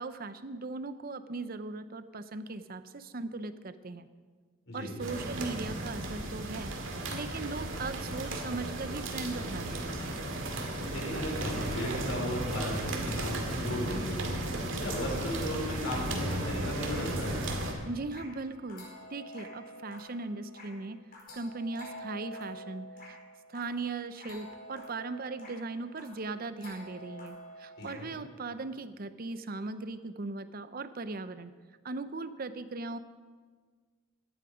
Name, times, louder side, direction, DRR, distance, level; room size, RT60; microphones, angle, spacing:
voice 1, 0.0-4.1 4.7-6.7 7.1-10.0 17.9-21.0 21.3-23.2 23.5-31.5 31.8-33.0, right 3 dB, 45° right, 12 dB, 0.6 m, -38 dB
sound 1, 5.0-17.7, right 1 dB, 65° right, 2.1 m, -35 dB
voice 2, 10.9-14.3 14.8-17.4 27.8-28.1, left 1 dB, 60° left, -2 dB, 5.0 m, -35 dB
sound 2, 16.2-28.1, equal, 40° left, 4.6 m, -48 dB
17.5 x 11.5 x 5.0 m, 1.5 s
head